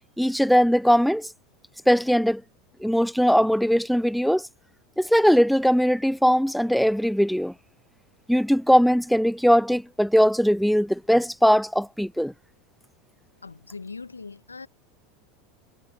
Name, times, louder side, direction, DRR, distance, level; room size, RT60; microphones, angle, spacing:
voice 1, 0.2-1.3 1.9-2.4 2.8-4.5 5.0-7.5 8.3-12.3, equal, ahead, 0.5 m, -20 dB
voice 2, 13.4-14.7, left 4 dB, 85° left, 1.5 m, -40 dB
figure-of-eight pair, 80°, 0 cm